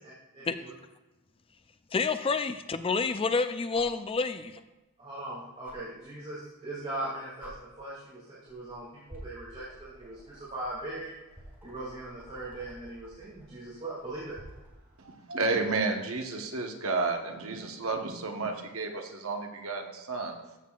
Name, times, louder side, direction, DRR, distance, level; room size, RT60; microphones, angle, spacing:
voice 1, 0.3-0.7 5.0-11.1 11.6-14.4, right 2 dB, 30° right, -10 dB, 2.6 m, -40 dB
sound 1, 1.5-1.6 3.7-4.0 5.6-5.8 6.9-7.0 7.4-7.5 8.5-8.7 9.1-14.8 16.4-16.5, equal, 10° right, 1.8 m, -50 dB
voice 2, 1.9-4.6, left 4 dB, 25° left, 10 dB, 0.4 m, -28 dB
voice 3, 15.0-20.3, right 3 dB, 65° right, 3 dB, 1.1 m, -31 dB
13.5 x 7.4 x 2.4 m, 1.1 s
head